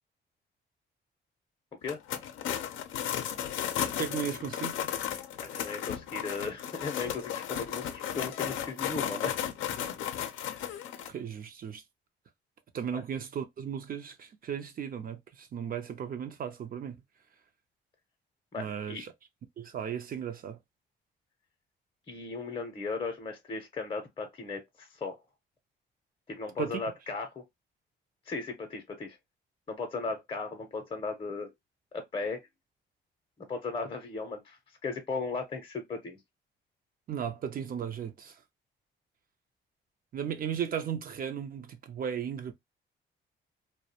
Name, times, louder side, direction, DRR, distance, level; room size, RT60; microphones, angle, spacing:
sound 1, 1.8-11.1, left 10 dB, 80° left, 0.5 m, -34 dB
voice 1, 4.0-4.8 11.1-11.8 12.7-17.0 18.6-19.1 19.6-20.6 26.6-26.8 37.1-38.4 40.1-42.5, right 8 dB, 45° right, 0.5 m, -35 dB
voice 2, 5.4-9.3 10.2-10.3 12.9-13.0 18.5-19.0 22.1-25.2 26.3-27.4 28.3-29.2 29.7-31.5 31.9-32.4 33.4-36.2, left 4 dB, 25° left, 0.6 m, -36 dB
2.3 x 2.1 x 2.7 m
cardioid pair, 90°, 20 cm